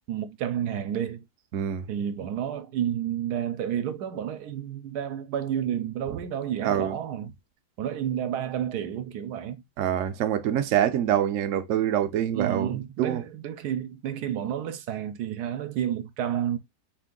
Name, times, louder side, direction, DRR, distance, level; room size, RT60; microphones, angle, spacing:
voice 1, 0.1-1.2 1.9-7.3 7.8-9.6 12.3-16.6, right 9 dB, 80° right, 1.2 m, -30 dB
voice 2, 1.5-1.9 6.6-7.0 9.8-13.2, right 10 dB, 65° right, 0.8 m, -25 dB
4.4 x 2.6 x 3.7 m
omnidirectional pair, 1.7 m